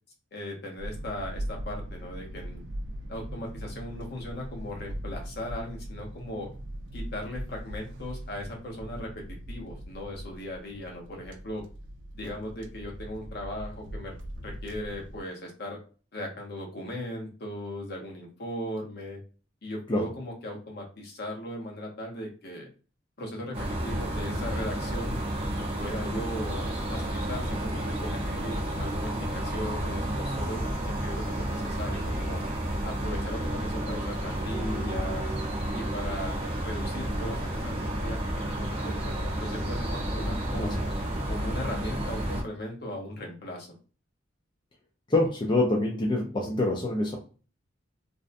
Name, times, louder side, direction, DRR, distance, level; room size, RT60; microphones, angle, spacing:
voice 1, 0.3-2.6 3.1-6.5 6.9-11.6 12.1-14.1 14.4-15.8 16.1-19.2 19.6-22.7 23.2-25.2 25.5-32.4 32.8-35.3 35.7-38.2 38.5-40.7 41.3-43.7, left 1 dB, 55° left, 1 dB, 0.7 m, -38 dB
sound 1, 0.8-15.2, equal, 70° right, 0.4 m, -40 dB
sound 2, 23.5-42.4, right 1 dB, 30° right, 0.7 m, -31 dB
voice 2, 45.1-47.2, left 2 dB, 25° left, -1 dB, 0.4 m, -26 dB
2.5 x 2.1 x 2.5 m, 0.37 s
head